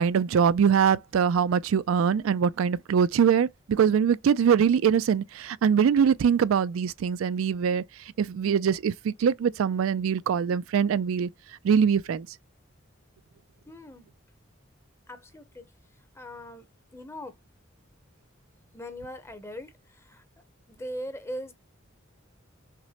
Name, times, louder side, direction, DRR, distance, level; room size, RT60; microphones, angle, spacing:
voice 1, 0.0-7.8 8.2-11.3 11.6-12.3, right 7 dB, 85° right, 0.3 m, -23 dB
voice 2, 13.7-14.1 15.1-16.7 16.9-17.4 18.7-20.2 20.7-21.5, equal, 15° left, 0.7 m, -40 dB
5.9 x 2.1 x 2.8 m
head